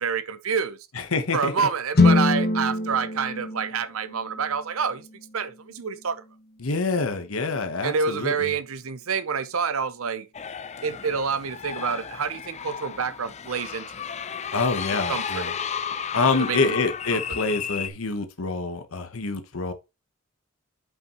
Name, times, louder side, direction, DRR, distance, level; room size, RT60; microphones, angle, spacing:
voice 1, 0.0-0.8 1.3-5.1 5.3-6.2 7.8-10.3 10.8-13.9 15.1-15.6 16.5-16.8 17.1-17.4, right 6 dB, 85° right, 0.7 m, -28 dB
voice 2, 1.0-1.7 6.6-8.5 14.5-15.5 16.1-19.7, left 3 dB, 80° left, 1.1 m, -26 dB
sound 1, 1.9-6.0, left 3 dB, 50° left, 1.1 m, -24 dB
sound 2, 10.3-17.9, left 7 dB, 35° left, 0.5 m, -33 dB
8.1 x 5.6 x 3.0 m
head